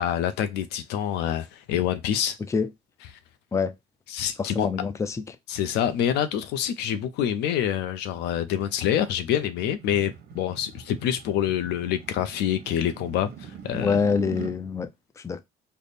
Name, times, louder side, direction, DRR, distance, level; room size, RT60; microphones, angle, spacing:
voice 1, 0.0-2.4 4.1-4.7 5.5-14.0, left 10 dB, 85° left, 0.6 m, -26 dB
voice 2, 4.4-5.4 13.7-14.9 15.2-15.4, left 5 dB, 15° left, 0.4 m, -26 dB
sound 1, 8.6-14.6, right 9 dB, 65° right, 0.8 m, -43 dB
3.4 x 2.1 x 4.0 m
cardioid pair, 110°, 17 cm